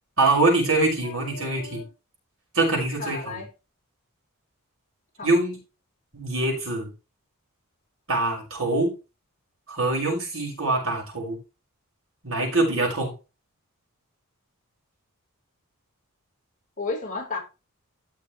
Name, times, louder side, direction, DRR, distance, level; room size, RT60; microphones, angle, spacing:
voice 1, 0.2-1.8 2.5-3.2 5.2-5.6 6.1-6.9 8.1-8.9 9.7-11.4 12.2-13.1, right 2 dB, 65° right, 0 dB, 5.7 m, -24 dB
voice 2, 1.0-1.9 3.0-3.5 5.2-5.3 16.8-17.4, left 3 dB, 35° left, 0 dB, 4.2 m, -33 dB
14.5 x 6.7 x 3.2 m, 0.29 s
head